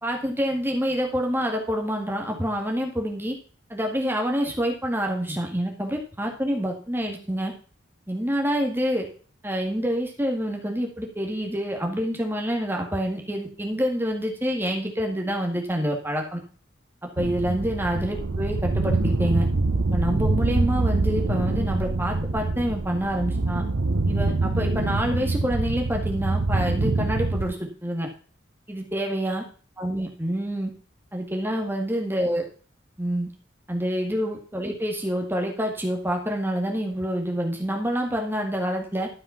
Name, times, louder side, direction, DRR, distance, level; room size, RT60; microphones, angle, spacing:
voice 1, 0.0-3.4 3.7-7.5 8.1-9.1 9.4-16.4 17.0-19.5 19.9-23.6 24.1-28.1 28.7-29.4 29.8-30.7 31.1-32.5 33.0-33.3 33.7-39.1, equal, 10° right, 2 dB, 1.8 m, -27 dB
sound 1, 17.2-27.5, right 2 dB, 90° right, 0.9 m, -25 dB
12.5 x 5.7 x 5.6 m, 0.41 s
head